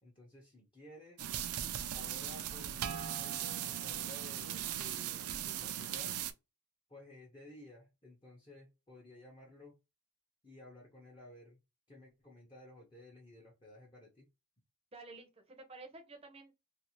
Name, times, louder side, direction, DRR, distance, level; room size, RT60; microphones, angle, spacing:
voice 1, 0.0-1.3 1.9-6.2 6.9-9.8 10.4-11.6 11.9-14.3, left 1 dB, 20° left, 0.7 m, -55 dB
sound 1, 1.2-6.3, right 10 dB, 75° right, 0.4 m, -38 dB
voice 2, 14.9-16.5, right 3 dB, 25° right, 0.6 m, -51 dB
2.5 x 2.4 x 2.9 m
head